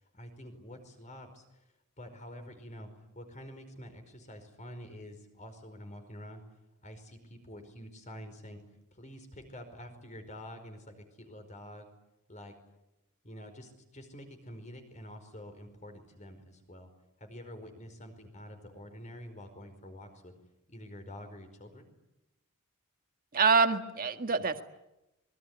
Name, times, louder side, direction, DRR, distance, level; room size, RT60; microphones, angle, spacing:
voice 1, 0.1-1.6 2.0-2.9 3.1-6.4 6.8-8.6 8.9-11.9 12.3-12.5 13.2-16.9 17.2-20.3 20.7-21.9, equal, 35° left, 8 dB, 5.0 m, -47 dB
voice 2, 23.3-24.6, right 5 dB, 40° right, 7 dB, 1.8 m, -26 dB
26.5 x 22.5 x 9.7 m, 0.92 s
head